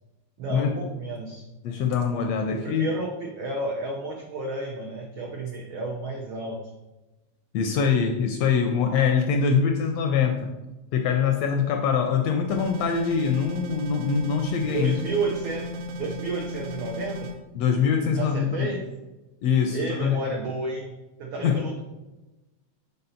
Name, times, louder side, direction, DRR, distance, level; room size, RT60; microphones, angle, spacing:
voice 1, 0.4-1.4 2.2-6.6 14.6-15.7 16.0-17.3 18.1-18.8 19.7-21.8, right 3 dB, 85° right, 0 dB, 1.1 m, -31 dB
voice 2, 1.6-2.9 7.5-10.5 10.9-15.0 17.5-18.7 19.4-20.2 21.4-21.6, left 6 dB, 80° left, 4 dB, 1.5 m, -23 dB
sound 1, 12.5-17.3, left 1 dB, 65° right, 1.6 m, -35 dB
5.4 x 3.9 x 5.6 m, 1.1 s
omnidirectional pair, 3.4 m